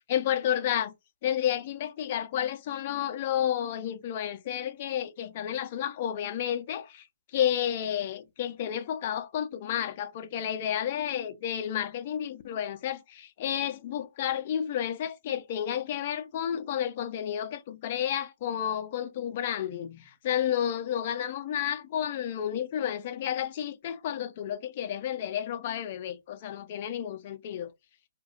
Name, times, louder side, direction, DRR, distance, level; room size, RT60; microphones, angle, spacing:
voice 1, 0.1-0.9 1.2-7.0 7.3-27.7, left 10 dB, 40° left, 0.4 m, -31 dB
2.2 x 2.2 x 2.5 m
figure-of-eight pair, 130°, 0 cm